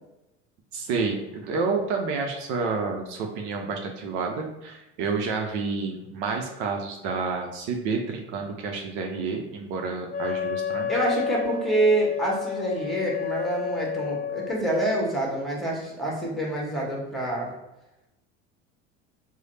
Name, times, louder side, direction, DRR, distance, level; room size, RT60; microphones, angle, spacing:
voice 1, 0.7-10.9, right 4 dB, 60° right, 2 dB, 0.6 m, -29 dB
Wind instrument woodwind instrument, 10.1-14.6, left 7 dB, 25° left, 1.0 m, -30 dB
voice 2, 10.9-17.5, right 1 dB, ahead, -4 dB, 1.2 m, -26 dB
3.1 x 2.0 x 4.0 m, 0.96 s
hypercardioid pair, 75°, 35 cm